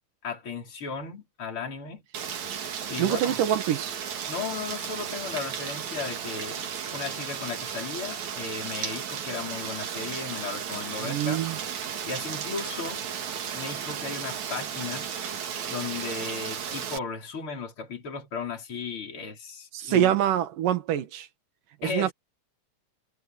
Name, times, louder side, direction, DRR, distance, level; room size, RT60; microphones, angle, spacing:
voice 1, 0.2-2.0 2.9-3.4 4.3-6.7 6.9-11.5 12.1-13.1 13.5-15.1 15.7-20.1 21.8-22.1, left 4 dB, 40° left, 5.7 m, -35 dB
Rain, 2.1-17.0, right 8 dB, 60° right, 3.2 m, -34 dB
voice 2, 3.0-3.9 11.0-11.6 19.7-21.3 21.8-22.1, right 11 dB, 90° right, 3.1 m, -25 dB
omnidirectional pair, 3.7 m